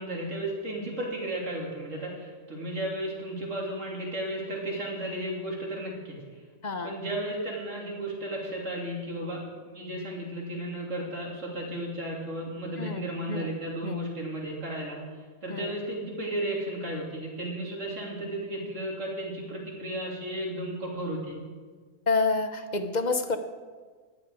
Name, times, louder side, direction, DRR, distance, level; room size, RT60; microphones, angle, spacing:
voice 1, 0.0-6.4 6.8-15.0 15.4-21.4, right 1 dB, 75° right, -2 dB, 3.5 m, -34 dB
voice 2, 6.6-6.9 12.8-13.5 13.8-14.1 15.5-15.8 22.1-23.4, left 3 dB, 40° left, 8 dB, 0.9 m, -29 dB
18.0 x 11.5 x 4.8 m, 1.5 s
omnidirectional pair, 1.3 m